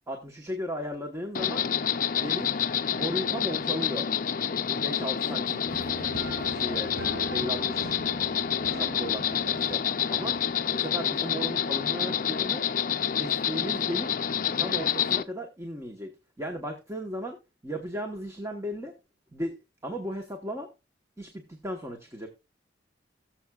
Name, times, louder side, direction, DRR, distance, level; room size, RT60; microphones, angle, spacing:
voice 1, 0.1-1.7 2.1-2.6 2.9-4.1 4.7-5.7 6.5-8.0 8.7-9.8 10.1-10.4 10.7-12.6 13.1-14.2 14.6-16.1 16.4-17.4 17.6-18.9 19.3-19.6 19.8-20.7 21.2-22.3, equal, 15° right, 3 dB, 1.0 m, -35 dB
Insect, 1.3-15.2, left 8 dB, 45° left, 0.5 m, -28 dB
sound 1, 5.7-10.9, right 3 dB, 65° right, 0.5 m, -43 dB
18.5 x 7.1 x 2.3 m, 0.26 s
head